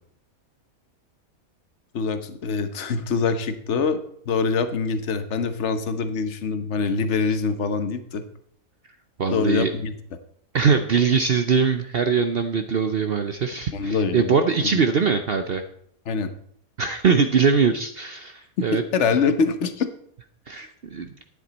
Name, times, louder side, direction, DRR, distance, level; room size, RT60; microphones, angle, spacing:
voice 1, 1.9-4.0 4.3-8.2 9.3-9.9 13.7-14.4 14.6-14.8 16.1-16.3 18.6-19.9, left 5 dB, 55° left, 10 dB, 1.2 m, -24 dB
voice 2, 9.2-9.7 10.5-15.6 16.8-18.8 20.5-21.1, right 5 dB, 55° right, 8 dB, 0.7 m, -22 dB
11.5 x 9.7 x 4.1 m, 0.66 s
omnidirectional pair, 1.5 m